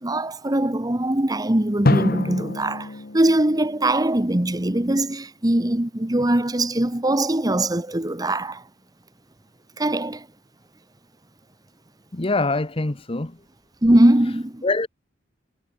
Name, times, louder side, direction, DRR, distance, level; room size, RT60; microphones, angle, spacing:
voice 1, 0.0-2.9 3.1-8.6 9.8-10.2 13.8-14.6, right 1 dB, 20° right, 1.3 m, -21 dB
Drum, 1.9-4.6, left 2 dB, 55° left, 0.9 m, -26 dB
voice 2, 12.1-13.4 14.6-14.9, left 3 dB, 30° left, 1.0 m, -24 dB
head